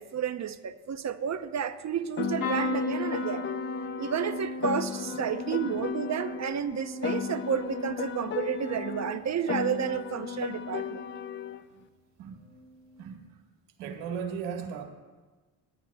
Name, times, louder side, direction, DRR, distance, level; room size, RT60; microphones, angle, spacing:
voice 1, 0.0-3.5 4.0-11.0, right 8 dB, 35° right, 12 dB, 0.8 m, -31 dB
Piano, 2.2-6.6 7.0-11.6, left 8 dB, 25° left, 0.4 m, -36 dB
sound 1, 2.4-10.2 10.7-11.2 12.5-12.7 12.9-13.0, left 2 dB, 40° left, 2.3 m, -36 dB
voice 2, 13.0-13.4 13.8-14.8, right 7 dB, 90° right, 3 dB, 1.6 m, -37 dB
19.0 x 10.0 x 2.3 m, 1.3 s
supercardioid pair, 70°, 48 cm